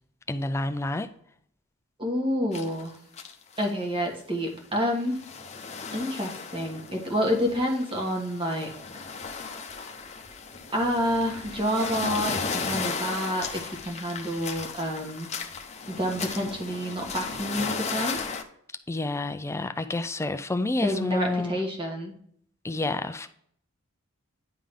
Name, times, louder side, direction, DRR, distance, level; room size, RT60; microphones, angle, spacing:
voice 1, 0.3-1.1 18.9-21.6 22.6-23.3, left 2 dB, 10° left, 9 dB, 0.4 m, -29 dB
voice 2, 2.0-2.9 3.6-5.2 5.9-8.7 10.7-15.3 15.9-18.2 20.8-22.1, equal, 25° right, 1 dB, 1.5 m, -28 dB
sound 1, 2.5-2.8 3.1-3.7 4.1-4.2 4.8-18.4, left 5 dB, 30° left, 0.8 m, -35 dB
10.0 x 3.7 x 3.5 m, 0.65 s
head